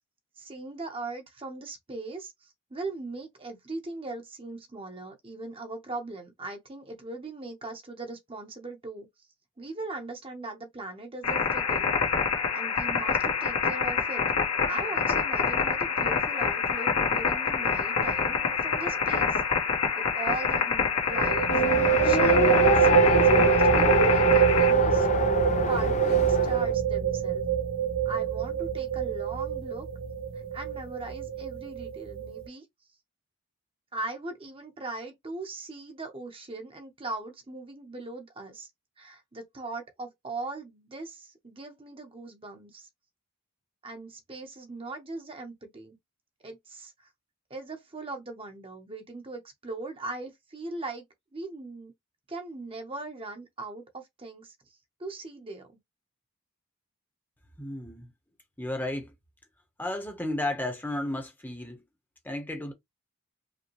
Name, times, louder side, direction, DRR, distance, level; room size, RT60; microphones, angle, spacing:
voice 1, 0.4-9.1 9.6-11.9 12.5-14.2 14.6-19.4 20.0-21.5 22.0-25.1 25.7-27.4 28.0-29.9 30.5-32.6 33.9-38.7 39.0-42.9 43.8-46.0 46.4-47.1 47.5-51.0 51.3-51.9 52.3-55.7, right 2 dB, 25° right, 0.8 m, -39 dB
sound 1, 11.2-24.7, left 5 dB, 80° left, 1.3 m, -27 dB
sound 2, 18.0-18.3 18.5-18.6 21.1-32.5, right 8 dB, 55° right, 0.5 m, -25 dB
Race car auto racing, 21.5-26.7, left 4 dB, 30° left, 0.3 m, -27 dB
voice 2, 57.6-58.1 58.6-59.1 59.8-61.8 62.2-62.7, left 1 dB, 10° left, 0.8 m, -33 dB
5.0 x 2.2 x 3.0 m
head